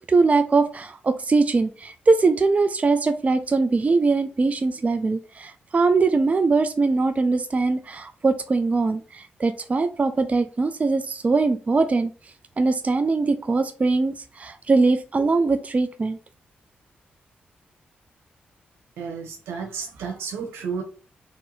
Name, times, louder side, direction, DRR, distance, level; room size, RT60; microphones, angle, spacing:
voice 1, 0.1-12.1 12.6-16.2, right 3 dB, 35° right, 9 dB, 0.4 m, -21 dB
voice 2, 19.0-20.8, right 6 dB, 85° right, 2 dB, 1.1 m, -32 dB
3.3 x 2.7 x 4.2 m, 0.37 s
supercardioid pair, 50°, 4 cm